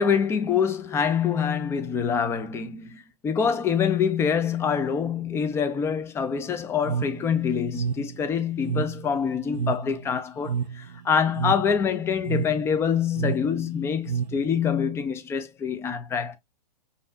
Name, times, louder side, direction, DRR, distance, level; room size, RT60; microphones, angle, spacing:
voice 1, 0.0-16.4, left 7 dB, 10° left, 0.5 m, -25 dB
sound 1, 6.8-14.7, right 7 dB, 90° right, 0.5 m, -31 dB
5.2 x 2.6 x 2.4 m
hypercardioid pair, 125°, 21 cm